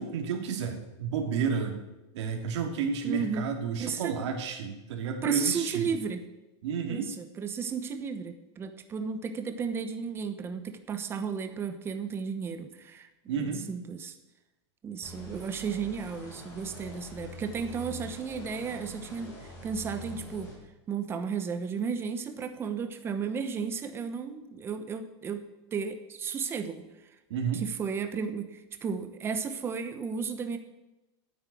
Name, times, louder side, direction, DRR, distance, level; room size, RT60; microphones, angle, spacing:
voice 1, 0.0-1.8 2.1-5.9 6.6-7.1 13.3-13.7 27.3-27.6, right 6 dB, 75° right, 2 dB, 2.7 m, -31 dB
voice 2, 3.0-3.5 3.8-4.1 5.2-6.2 6.9-13.1 13.4-14.1 14.8-20.5 20.9-25.4 25.7-27.1 27.5-30.6, right 6 dB, 15° right, 8 dB, 0.9 m, -34 dB
sound 1, 15.0-20.5, equal, 20° left, 4.3 m, -44 dB
9.9 x 8.7 x 8.5 m, 1.0 s
supercardioid pair, 165°, 15 cm